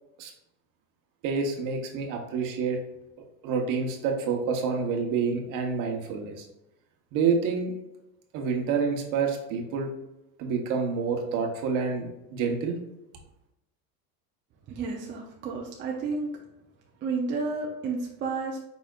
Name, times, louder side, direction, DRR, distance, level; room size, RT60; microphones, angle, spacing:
voice 1, 1.2-2.8 3.4-6.5 7.1-7.7 8.3-9.9 10.4-12.8, right 5 dB, 45° right, 2 dB, 1.1 m, -28 dB
voice 2, 14.7-16.3 17.0-18.6, right 4 dB, 25° right, -1 dB, 0.6 m, -31 dB
5.0 x 4.1 x 2.4 m, 0.90 s
supercardioid pair, 140°, 43 cm